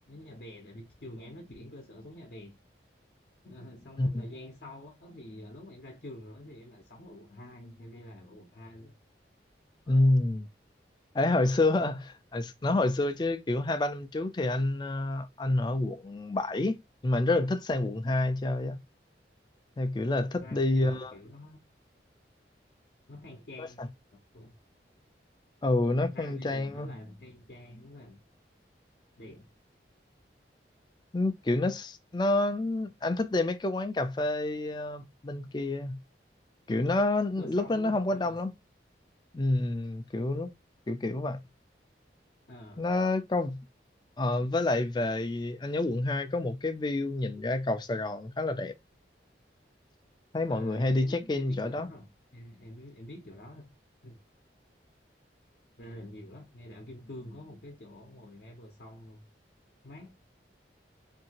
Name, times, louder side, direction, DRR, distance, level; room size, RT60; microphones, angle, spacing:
voice 1, 0.1-2.6 3.4-9.0 9.9-10.1 20.4-21.7 23.1-23.9 24.1-24.6 26.0-28.2 29.2-29.5 37.4-38.4 42.5-42.9 50.5-53.7 54.0-54.2 55.8-59.3 59.8-60.2, left 1 dB, 60° left, 0.7 m, -47 dB
voice 2, 9.9-10.5 11.1-16.8 17.0-18.8 19.8-21.1 23.6-23.9 25.6-26.9 31.1-36.0 36.7-38.5 39.3-40.5 40.9-41.4 42.8-43.6 44.2-48.7 50.3-51.9, left 2 dB, 25° left, 0.3 m, -28 dB
2.7 x 2.6 x 2.7 m
head